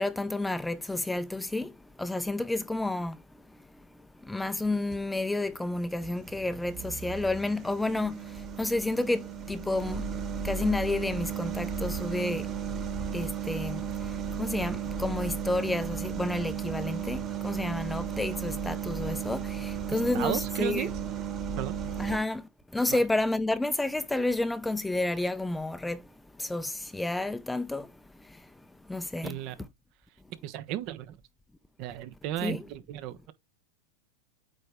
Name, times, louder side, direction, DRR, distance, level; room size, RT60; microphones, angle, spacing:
voice 1, 0.0-3.2 4.2-12.5 13.1-14.1 14.4-20.9 22.0-26.1 26.4-27.9 28.3-28.4 28.9-29.4 32.4-32.6, left 2 dB, 5° left, 0.6 m, -30 dB
sound 1, 4.4-5.0 5.6-22.2, right 7 dB, 30° right, 2.1 m, -35 dB
voice 2, 19.9-20.9 21.6-21.8 22.9-23.0 29.2-29.5 30.3-31.2 31.8-33.3, right 12 dB, 50° right, 1.2 m, -34 dB
8.7 x 4.4 x 3.6 m
hypercardioid pair, 110°, 0 cm